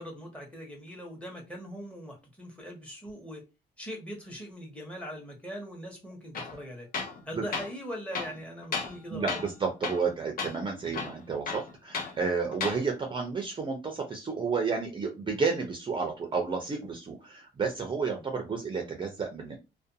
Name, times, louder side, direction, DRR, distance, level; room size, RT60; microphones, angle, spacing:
voice 1, 0.0-3.4 3.8-6.9 7.2-9.4 10.8-11.0 18.2-18.3, equal, 5° left, 1.0 m, -41 dB
Tools, 6.3-6.6 6.9-7.2 7.5-7.7 8.1-9.0 9.3-9.5 9.8-10.1 10.4-10.5 10.9-12.1 12.5-12.8, left 4 dB, 50° left, 0.7 m, -34 dB
voice 2, 9.1-19.6, right 5 dB, 25° right, 0.5 m, -31 dB
2.5 x 2.2 x 2.7 m
cardioid pair, 120°, 19 cm